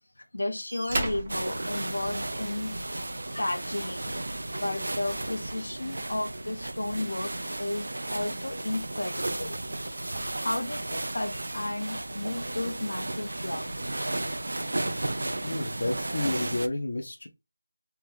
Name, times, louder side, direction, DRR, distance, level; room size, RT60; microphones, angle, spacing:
voice 1, 0.3-2.9 3.3-4.1 4.6-9.6 10.4-13.9, left 1 dB, 75° left, 0.8 m, -33 dB
sound 1, 0.7-2.7 4.2-4.4 4.8-10.6 11.0-15.2 16.1-16.2, right 2 dB, 25° right, 0.7 m, -42 dB
sound 2, 1.3-16.7, right 2 dB, 60° right, 0.4 m, -34 dB
voice 2, 15.4-17.3, left 2 dB, 40° left, 0.6 m, -30 dB
3.4 x 3.2 x 3.1 m
figure-of-eight pair, 175°, 0 cm